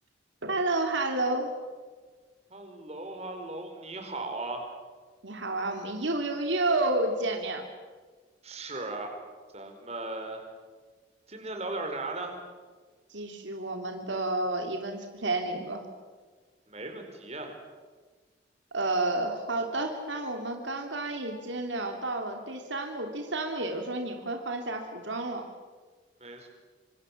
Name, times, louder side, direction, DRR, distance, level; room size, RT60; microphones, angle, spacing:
voice 1, 0.4-1.5 5.2-7.7 13.1-15.8 18.7-25.5, right 2 dB, 75° right, 4 dB, 3.1 m, -30 dB
voice 2, 2.5-4.6 8.4-9.2 9.5-10.4 11.3-12.3 16.7-17.5 26.2-26.5, right 2 dB, 35° right, 4 dB, 4.9 m, -37 dB
27.0 x 26.0 x 7.4 m, 1.4 s
head